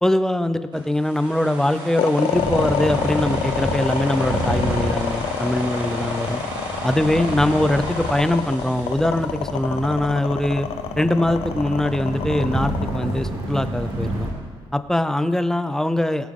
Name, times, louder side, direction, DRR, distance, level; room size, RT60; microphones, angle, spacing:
voice 1, 0.0-6.4 6.8-10.7 11.0-14.3 14.7-16.3, left 1 dB, 5° left, 11 dB, 0.5 m, -22 dB
sound 1, 0.7-9.9, right 1 dB, 45° right, 3.0 m, -35 dB
sound 2, 2.0-14.2, left 9 dB, 75° left, 0.7 m, -27 dB
sound 3, 2.3-14.3, right 1 dB, 80° right, 4.3 m, -30 dB
22.0 x 7.5 x 3.7 m, 1.5 s
cardioid pair, 115°, 10 cm